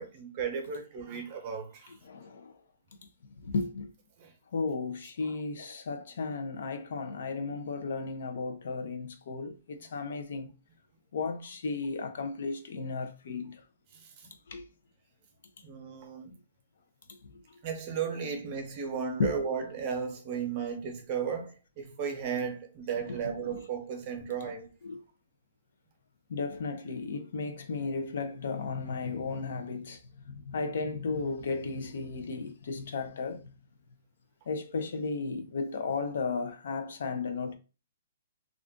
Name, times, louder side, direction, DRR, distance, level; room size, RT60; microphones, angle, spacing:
voice 1, 0.0-1.9 4.2-4.3 14.0-14.3 15.6-16.3 17.6-24.7, right 6 dB, 30° right, 0.8 m, -35 dB
voice 2, 1.9-2.6 3.4-3.9 4.5-10.5 11.1-13.6 14.5-14.7 17.1-17.2 19.2-19.4 23.0-23.7 24.4-24.5 24.8-25.0 26.3-33.4 34.5-37.6, left 4 dB, 65° left, 0.5 m, -34 dB
2.4 x 2.4 x 3.6 m
hypercardioid pair, 160°, 0 cm